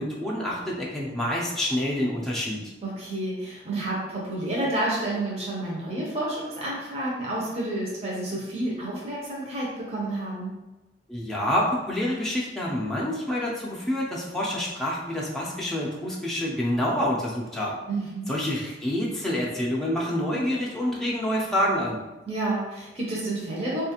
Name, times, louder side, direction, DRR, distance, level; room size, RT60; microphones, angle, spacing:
voice 1, 0.0-2.6 11.1-17.8 18.3-22.0, left 1 dB, 5° left, -5 dB, 0.5 m, -27 dB
voice 2, 2.8-10.5 17.9-18.3 22.3-23.9, right 1 dB, 35° right, -5 dB, 0.7 m, -30 dB
3.8 x 2.4 x 2.8 m, 1.1 s
head